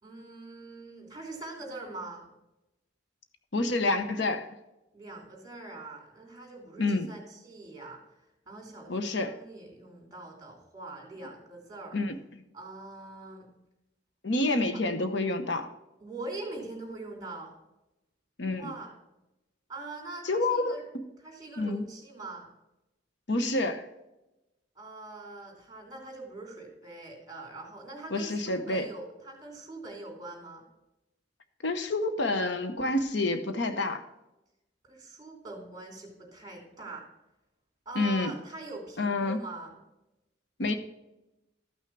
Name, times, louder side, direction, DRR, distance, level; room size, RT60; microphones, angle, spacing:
voice 1, 0.0-2.3 4.9-8.0 8.5-12.0 12.5-13.5 16.0-17.5 18.6-18.9 19.7-20.8 21.2-22.5 24.8-30.6 34.9-37.0 37.8-39.8, right 2 dB, 20° right, 1 dB, 3.0 m, -43 dB
voice 2, 3.5-4.5 6.8-7.1 8.9-9.4 11.9-12.1 14.2-15.7 18.4-18.7 20.2-21.0 21.6-21.9 23.3-23.9 28.1-28.9 31.6-34.0 37.9-38.4 39.0-39.4 40.6-40.7, left 2 dB, 65° left, 8 dB, 0.9 m, -28 dB
13.5 x 5.9 x 4.6 m, 0.94 s
head